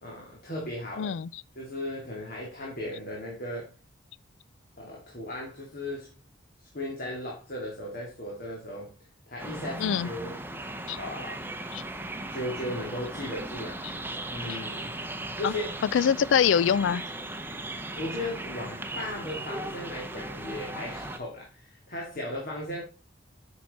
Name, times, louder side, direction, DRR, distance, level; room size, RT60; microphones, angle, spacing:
voice 1, 0.0-1.2 1.6-3.7 4.8-6.1 6.7-8.9 9.3-10.3 11.0-11.5 12.3-13.8 14.3-15.0 15.4-15.7 17.9-22.8, left 1 dB, 50° left, 2.5 m, -36 dB
voice 2, 1.0-1.4 9.8-10.1 10.9-11.0 11.7-11.8 14.5-14.6 15.4-15.5 15.9-17.0, left 7 dB, 75° left, 0.4 m, -24 dB
sound 1, 9.4-21.2, right 1 dB, 10° right, 0.8 m, -37 dB
9.5 x 6.1 x 4.2 m
head